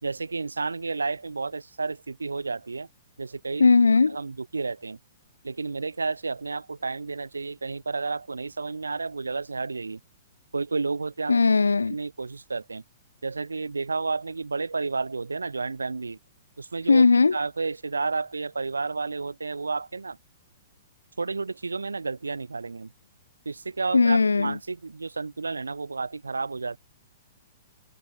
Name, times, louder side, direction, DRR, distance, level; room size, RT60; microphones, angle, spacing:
voice 1, 0.0-2.9 3.2-3.7 4.1-5.0 5.4-10.0 10.5-11.3 11.9-12.8 13.2-16.2 16.6-20.2 21.2-22.9 23.4-26.8, right 4 dB, 90° right, 1.2 m, -31 dB
voice 2, 3.6-4.2 11.3-11.9 16.9-17.4 23.9-24.6, left 4 dB, 90° left, 0.3 m, -18 dB
hypercardioid pair, 120°, 0 cm